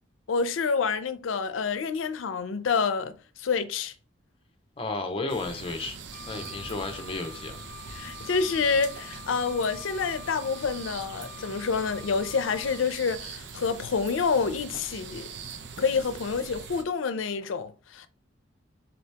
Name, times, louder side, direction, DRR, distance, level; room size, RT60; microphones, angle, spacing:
voice 1, 0.3-3.1 3.4-3.9 7.9-15.3 15.8-18.1, left 5 dB, 90° left, 0.5 m, -28 dB
voice 2, 4.8-6.0 6.3-7.6, left 3 dB, 30° left, 0.6 m, -33 dB
sound 1, 5.3-16.8, right 5 dB, 65° right, 0.5 m, -42 dB
Wind instrument woodwind instrument, 6.1-12.9, left 8 dB, 45° right, 1.8 m, -47 dB
3.9 x 2.8 x 3.3 m
head